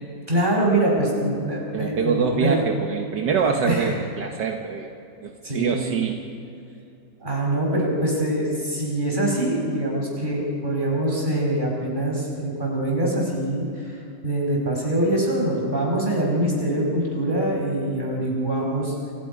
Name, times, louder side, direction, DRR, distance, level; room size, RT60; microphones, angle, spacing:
voice 1, 0.3-2.6 3.6-3.8 5.4-5.9 7.2-14.0 14.2-18.9, right 1 dB, 25° right, -1 dB, 5.2 m, -24 dB
voice 2, 1.7-4.9 5.2-6.2, right 6 dB, 70° right, 3 dB, 1.9 m, -25 dB
28.0 x 27.0 x 5.3 m, 2.6 s
omnidirectional pair, 1.9 m